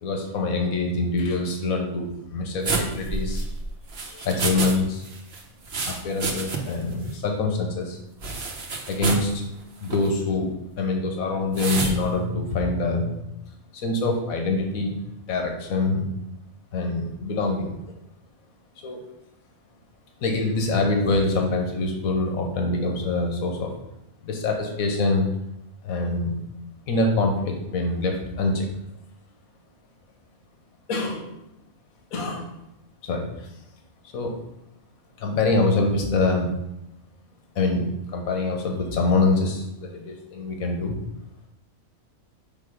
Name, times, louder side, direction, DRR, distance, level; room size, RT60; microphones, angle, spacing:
voice 1, 0.0-3.5 4.1-5.1 5.8-8.0 8.9-9.4 9.8-10.5 10.8-13.2 13.7-15.0 15.3-16.0 16.7-17.7 18.8-19.0 20.2-23.7 24.2-25.3 25.8-26.4 26.9-28.7 30.9-31.3 32.1-32.5 33.0-33.5 34.1-34.4 35.2-36.5 37.6-40.9, left 3 dB, 85° left, 2 dB, 1.3 m, -25 dB
sound 1, 2.6-4.8 5.0-6.8 7.1-7.2 8.2-9.3 9.8-10.1 11.5-12.0, right 4 dB, 55° right, 1.0 m, -28 dB
5.8 x 3.5 x 4.9 m, 0.86 s
omnidirectional pair, 1.4 m